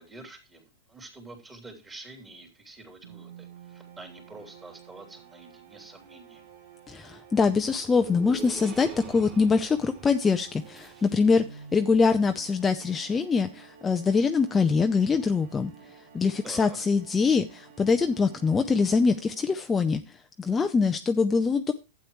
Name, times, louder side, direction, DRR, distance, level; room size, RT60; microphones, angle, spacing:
voice 1, 0.0-6.4 16.4-16.8, right 2 dB, 15° right, 2 dB, 3.0 m, -47 dB
sound 1, 3.0-19.8, right 7 dB, 70° right, 2.2 m, -51 dB
voice 2, 6.9-21.7, left 5 dB, 15° left, 7 dB, 0.6 m, -24 dB
sound 2, 7.7-11.7, right 4 dB, 30° right, 2.9 m, -45 dB
12.0 x 8.6 x 3.1 m, 0.28 s
hypercardioid pair, 110°, 0 cm